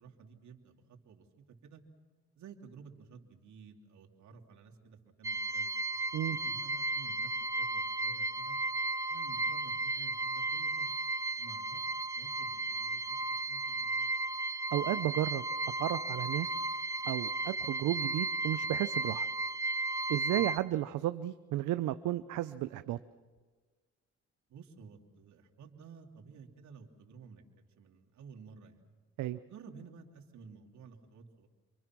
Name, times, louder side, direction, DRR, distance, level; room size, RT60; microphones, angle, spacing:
voice 1, 0.0-1.8 2.3-5.7 6.3-8.6 9.1-10.9 11.4-11.8 12.2-13.0 13.5-14.1 20.3-20.5 24.5-28.9 29.5-31.5, right 5 dB, 70° right, 1 dB, 3.2 m, -53 dB
sound 1, 5.2-20.6, right 2 dB, 10° right, 0.8 m, -34 dB
voice 2, 14.7-15.4 15.8-16.5 17.0-19.3 20.1-23.0 29.2-29.4, right 14 dB, 85° right, 12 dB, 0.7 m, -33 dB
28.0 x 24.0 x 6.1 m, 1.4 s
cardioid pair, 90°, 30 cm